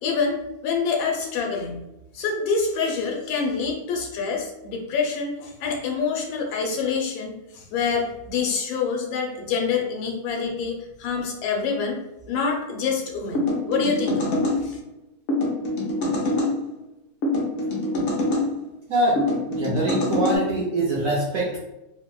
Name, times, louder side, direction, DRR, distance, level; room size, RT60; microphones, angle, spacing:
voice 1, 0.0-1.8 2.1-12.0 12.3-14.8, left 5 dB, 85° left, 1 dB, 1.4 m, -26 dB
sound 1, 13.3-14.6 15.3-16.5 17.2-18.5 19.2-20.4, left 1 dB, 70° left, 0.7 m, -24 dB
voice 2, 18.9-21.6, right 1 dB, 70° right, -6 dB, 0.7 m, -24 dB
3.5 x 2.0 x 2.3 m, 0.90 s
omnidirectional pair, 2.1 m